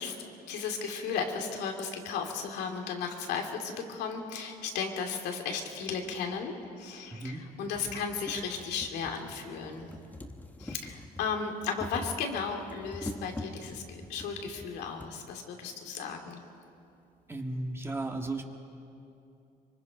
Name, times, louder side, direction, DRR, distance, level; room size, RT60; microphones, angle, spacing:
voice 1, 0.0-9.9 10.6-16.4, left 5 dB, 85° left, 2 dB, 2.6 m, -35 dB
sound 1, 5.6-5.7 6.6-6.7 7.2-7.3 7.6-15.1 16.1-16.2 16.4-16.5, left 2 dB, 10° left, 1.1 m, -44 dB
voice 2, 7.1-7.4 17.3-18.4, right 2 dB, 15° right, 2 dB, 1.8 m, -35 dB
25.0 x 24.0 x 5.2 m, 2.6 s
cardioid pair, 110°, 17 cm